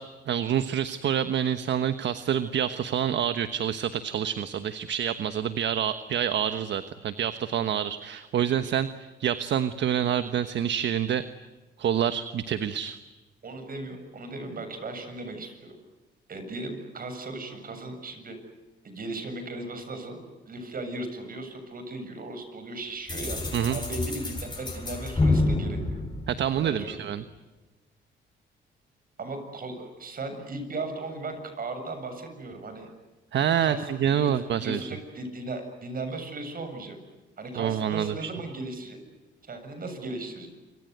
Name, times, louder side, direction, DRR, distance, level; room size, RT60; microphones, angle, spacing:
voice 1, 0.0-8.9 9.2-11.2 11.8-13.0 23.5-23.8 26.3-27.2 33.3-34.9 37.6-38.3, right 9 dB, 65° right, 11 dB, 1.2 m, -27 dB
voice 2, 13.4-15.8 16.3-18.4 18.8-23.4 23.7-26.0 26.5-27.0 29.2-32.9 33.6-34.3 34.6-37.0 37.4-39.0 39.4-40.5, right 2 dB, 45° right, 8 dB, 7.4 m, -37 dB
sound 1, 23.1-26.9, left 2 dB, 20° left, 7.9 m, -28 dB
28.0 x 25.5 x 8.1 m, 1.2 s
cardioid pair, 90°, 20 cm